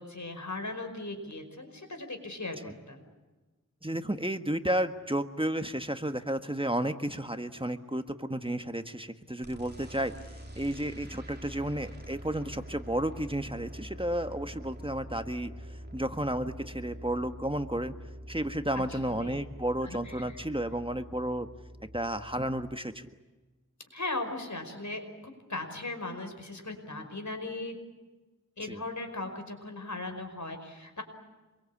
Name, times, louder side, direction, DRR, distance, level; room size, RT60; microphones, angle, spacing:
voice 1, 0.0-3.0 18.7-19.4 19.8-20.2 23.9-27.8 28.6-31.0, left 2 dB, 65° left, 6 dB, 5.3 m, -38 dB
voice 2, 3.8-10.1 10.5-17.9 18.3-21.5 21.9-23.1 28.7-28.8, right 1 dB, 15° right, 8 dB, 1.5 m, -32 dB
sound 1, 9.4-22.8, equal, 35° right, 3.0 m, -45 dB
27.0 x 23.0 x 8.6 m, 1.2 s
wide cardioid pair, 50°, 31 cm